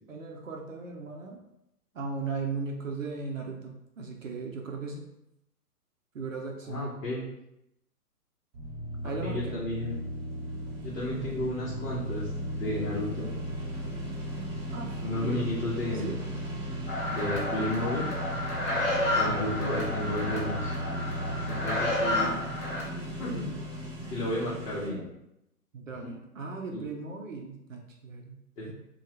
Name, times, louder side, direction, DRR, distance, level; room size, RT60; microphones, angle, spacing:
voice 1, 0.1-1.4 1.9-5.1 6.1-6.9 9.0-9.6 14.7-15.5 15.9-16.2 19.3-19.6 25.7-28.4 28.7-28.8, right 4 dB, 55° right, 1 dB, 0.5 m, -37 dB
voice 2, 6.7-7.2 9.2-9.9 10.8-13.3 15.0-16.0 17.1-18.1 19.1-20.7 21.4-22.3 23.2-23.5 24.1-25.0 26.7-26.8 28.6-28.7, left 1 dB, 55° left, -7 dB, 0.9 m, -33 dB
sound 1, 8.5-24.9, equal, 30° right, 1.3 m, -36 dB
sound 2, 16.9-22.8, left 1 dB, 35° left, 1.5 m, -31 dB
2.7 x 2.3 x 3.1 m, 0.86 s
figure-of-eight pair, 125°, 48 cm